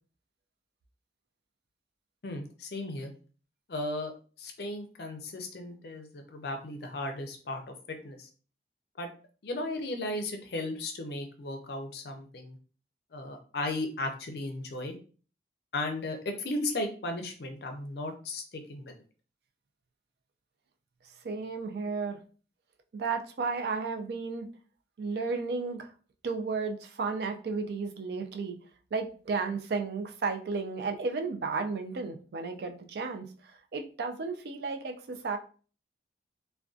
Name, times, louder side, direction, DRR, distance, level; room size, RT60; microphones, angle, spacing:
voice 1, 2.2-3.1 3.7-4.1 4.4-8.3 9.0-9.1 9.4-12.6 13.1-15.0 15.7-18.4 18.7-18.9, left 2 dB, 60° left, 5 dB, 0.5 m, -35 dB
voice 2, 21.2-22.2 22.9-24.5 25.0-25.9 26.2-28.6 28.9-35.4, right 4 dB, 60° right, 5 dB, 0.3 m, -33 dB
2.5 x 2.2 x 2.3 m, 0.39 s
head